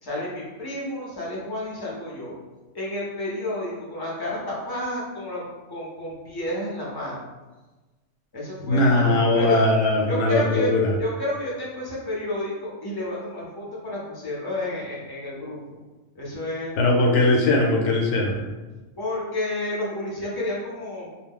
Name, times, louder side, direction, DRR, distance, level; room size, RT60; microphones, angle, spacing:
voice 1, 0.0-2.3 2.7-5.4 5.7-7.3 8.3-9.6 10.1-10.7 11.0-15.8 16.1-16.8 19.0-21.1, left 1 dB, 25° left, -6 dB, 0.5 m, -30 dB
voice 2, 8.6-10.9 16.8-18.4, left 2 dB, 75° left, 0 dB, 0.9 m, -20 dB
2.2 x 2.1 x 3.5 m, 1.2 s
omnidirectional pair, 1.3 m